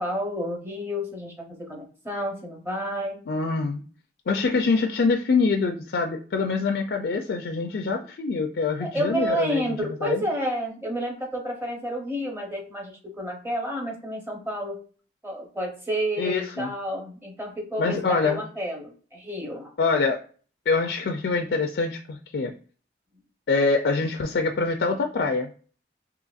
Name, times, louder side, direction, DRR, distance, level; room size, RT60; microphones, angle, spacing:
voice 1, 0.0-3.2 8.8-14.8 15.2-19.7, equal, 15° right, 0 dB, 0.8 m, -30 dB
voice 2, 3.3-3.8 4.3-9.6 10.0-10.2 16.2-16.7 17.8-18.4 19.8-20.2 20.7-22.5 23.5-25.5, left 4 dB, 70° left, 3 dB, 0.4 m, -25 dB
3.8 x 2.8 x 2.4 m, 0.41 s
head